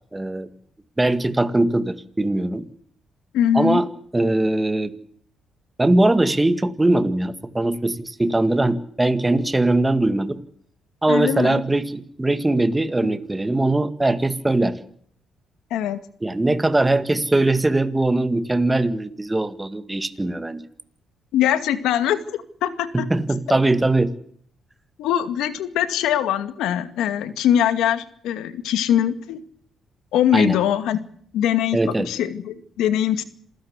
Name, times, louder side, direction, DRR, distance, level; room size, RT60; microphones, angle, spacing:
voice 1, 0.1-0.5 1.0-2.7 3.5-3.9 4.1-4.9 5.8-10.4 11.0-14.8 16.2-20.6 22.9-24.1 30.3-30.6 31.7-32.1, right 2 dB, 15° right, 11 dB, 1.9 m, -21 dB
voice 2, 3.3-3.8 11.1-11.6 15.7-16.0 21.3-23.1 25.0-29.4 30.1-31.1 31.3-33.2, left 10 dB, 85° left, 10 dB, 2.2 m, -22 dB
27.5 x 16.0 x 8.2 m, 0.64 s
cardioid pair, 90°, 0 cm